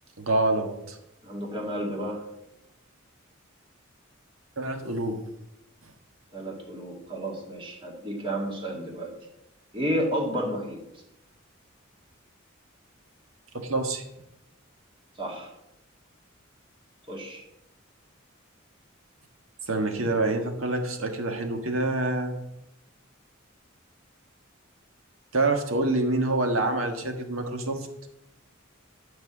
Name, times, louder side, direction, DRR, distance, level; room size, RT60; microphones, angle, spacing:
voice 1, 0.2-1.0 4.6-5.2 13.5-14.0 19.7-22.3 25.3-27.9, right 2 dB, 90° right, 4 dB, 1.6 m, -26 dB
voice 2, 1.2-2.2 6.3-9.1 9.7-10.8 15.2-15.5 17.1-17.4, equal, 25° right, 0 dB, 2.3 m, -31 dB
12.5 x 4.7 x 8.3 m, 0.87 s
head